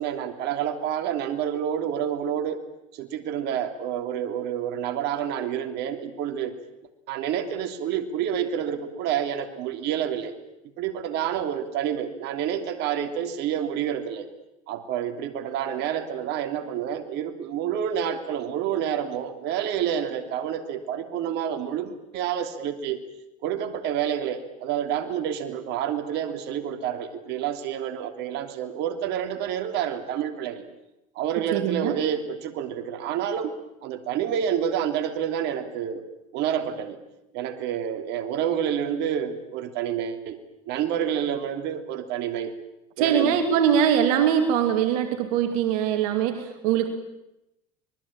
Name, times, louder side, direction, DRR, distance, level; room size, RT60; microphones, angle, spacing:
voice 1, 0.0-2.6 2.9-6.5 7.1-10.3 10.8-14.3 14.7-23.0 23.4-30.6 31.1-33.5 33.8-36.1 36.3-37.0 37.3-40.4 40.7-42.5 43.0-43.4, right 9 dB, 65° right, 7 dB, 3.1 m, -28 dB
voice 2, 31.5-31.9 43.0-46.9, right 8 dB, 80° right, 7 dB, 2.7 m, -22 dB
26.0 x 21.5 x 8.9 m, 0.89 s
supercardioid pair, 95°, 19 cm